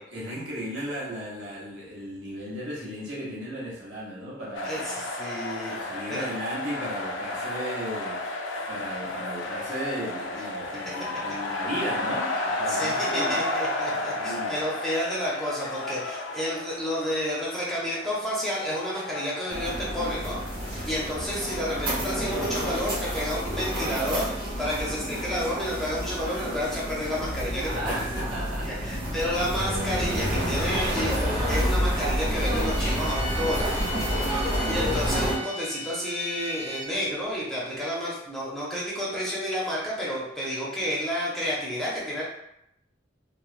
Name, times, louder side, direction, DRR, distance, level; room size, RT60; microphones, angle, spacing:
voice 1, 0.0-5.1 5.6-13.5 13.9-14.6 24.6-25.0 27.6-28.9 29.9-30.0 34.1-34.5 40.8-41.0, equal, 75° right, -6 dB, 1.0 m, -36 dB
sound 1, 4.5-23.4, left 2 dB, 75° left, 0.4 m, -33 dB
voice 2, 4.6-5.8 6.1-6.3 12.7-20.4 20.7-28.0 28.8-33.7 34.7-42.2, equal, ahead, -6 dB, 0.6 m, -30 dB
sound 2, 19.5-35.4, equal, 25° right, 1.2 m, -29 dB
Bowed string instrument, 32.5-36.9, left 1 dB, 45° right, 1.1 m, -37 dB
3.3 x 2.0 x 2.5 m, 0.80 s
head